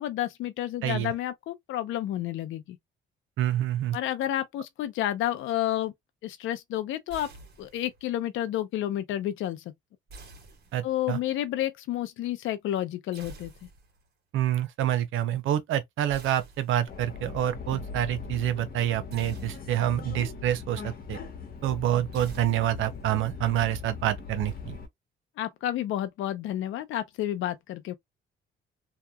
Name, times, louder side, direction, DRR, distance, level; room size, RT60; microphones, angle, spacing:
voice 1, 0.0-2.8 3.9-5.9 6.2-7.3 7.6-9.6 10.8-13.5 25.4-27.9, left 12 dB, 80° left, 0.5 m, -30 dB
voice 2, 0.8-1.1 3.4-4.0 10.7-11.2 14.3-21.2 21.6-24.8, right 12 dB, 80° right, 0.6 m, -27 dB
sound 1, 7.1-8.0 10.1-11.2 13.1-14.1 16.1-17.1 19.1-20.1 22.1-23.1, right 3 dB, 55° right, 1.3 m, -49 dB
Subway metro underground, 16.9-24.9, left 5 dB, 50° left, 1.0 m, -40 dB
2.8 x 2.2 x 2.2 m
cardioid pair, 90°, 20 cm